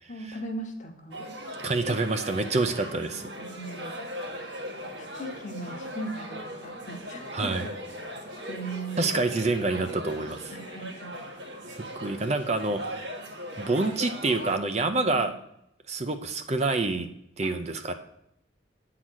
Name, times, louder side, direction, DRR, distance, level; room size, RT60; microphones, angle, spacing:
voice 1, 0.1-1.2 2.9-3.9 5.0-7.7 8.5-9.1 10.5-11.1 14.9-15.3 17.4-17.5, right 2 dB, 40° left, 4 dB, 1.1 m, -39 dB
sound 1, 1.1-14.6, equal, 65° right, 1.5 m, -39 dB
voice 2, 1.6-3.3 7.3-7.6 9.0-10.5 11.9-13.1 13.6-15.3 15.9-17.1 17.4-17.9, right 3 dB, 35° right, 8 dB, 0.5 m, -27 dB
8.6 x 3.9 x 6.2 m, 0.77 s
head